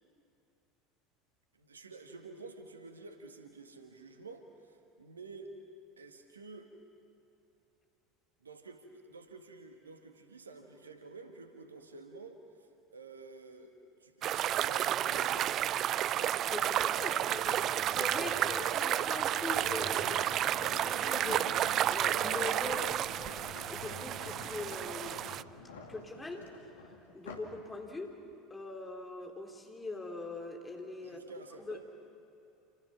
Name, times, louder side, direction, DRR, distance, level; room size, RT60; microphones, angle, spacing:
voice 1, 1.5-5.5 6.0-6.7 8.4-15.5 16.1-16.4 31.0-31.8, right 3 dB, 80° right, 5 dB, 1.9 m, -50 dB
sound 1, 14.2-25.4, right 11 dB, 40° right, 0.5 m, -31 dB
voice 2, 16.5-23.0 23.7-25.3 25.9-26.5 27.1-28.2 28.5-31.3 31.7-31.8, left 2 dB, 15° left, 2 dB, 3.7 m, -42 dB
sound 2, 17.4-27.6 28.1-28.3, left 3 dB, 65° left, 2.5 m, -48 dB
28.5 x 28.0 x 5.9 m, 2.8 s
figure-of-eight pair, 70°, 0 cm